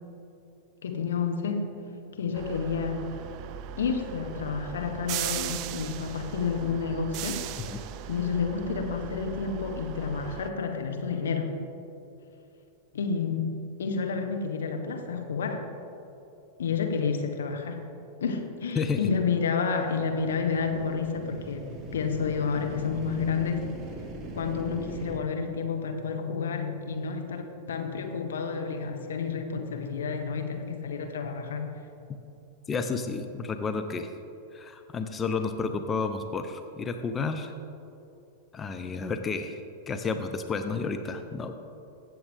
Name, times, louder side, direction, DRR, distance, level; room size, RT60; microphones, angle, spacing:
voice 1, 0.8-1.7 2.2-3.1 3.8-7.7 8.1-11.5 12.9-13.5 13.8-15.6 16.6-17.8 18.2-21.6 21.9-23.7 24.3-31.7, left 5 dB, 75° left, 5 dB, 1.1 m, -30 dB
sound 1, 2.3-10.5, right 10 dB, 45° right, 0.4 m, -38 dB
sound 2, 20.0-25.2, right 2 dB, 25° right, 1.6 m, -41 dB
voice 2, 32.7-34.1 34.5-37.5 38.5-39.6 39.9-41.5, left 4 dB, 25° left, 7 dB, 0.7 m, -31 dB
15.0 x 7.7 x 3.5 m, 2.9 s
hypercardioid pair, 100°, 0 cm